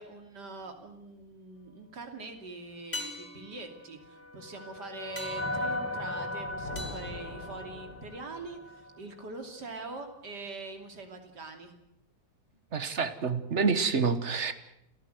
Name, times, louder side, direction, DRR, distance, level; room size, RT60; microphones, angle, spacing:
voice 1, 0.0-11.7, right 3 dB, 80° right, 5 dB, 3.5 m, -43 dB
sound 1, 0.6-1.2 2.9-8.1 12.5-12.6, left 2 dB, 35° left, 2.9 m, -45 dB
sound 2, 3.7-9.0, left 1 dB, 10° left, 1.2 m, -38 dB
Thunder, 6.1-8.7, left 2 dB, 75° left, 4.9 m, -45 dB
voice 2, 12.7-14.5, right 5 dB, 45° right, 11 dB, 1.6 m, -28 dB
30.0 x 14.5 x 7.9 m, 0.79 s
omnidirectional pair, 1.8 m